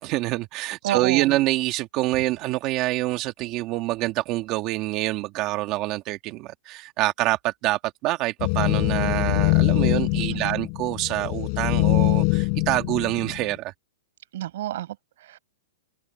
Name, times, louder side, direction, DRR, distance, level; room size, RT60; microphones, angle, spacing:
voice 1, 0.0-13.7, right 17 dB, 30° right, 1.5 m, -26 dB
voice 2, 0.8-1.4 10.1-10.7 14.3-15.4, right 13 dB, 60° right, 6.0 m, -31 dB
sound 1, 8.4-13.5, left 40 dB or more, 40° left, 4.8 m, -23 dB
hypercardioid pair, 160°, 0 cm